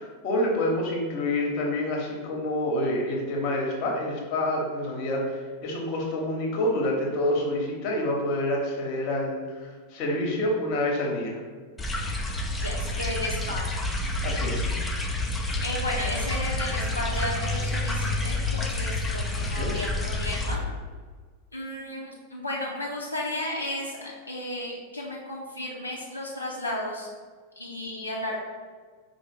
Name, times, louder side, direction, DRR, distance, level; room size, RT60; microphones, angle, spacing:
voice 1, 0.0-11.4 14.2-14.7 19.3-19.8, left 1 dB, 40° left, -1 dB, 0.8 m, -28 dB
sound 1, 11.8-20.6, left 2 dB, 10° left, 0.4 m, -29 dB
voice 2, 12.6-13.7 15.6-20.6 21.5-27.1 27.6-28.4, left 1 dB, 85° left, -3 dB, 0.5 m, -33 dB
4.7 x 2.0 x 3.3 m, 1.5 s
figure-of-eight pair, 90°, 0 cm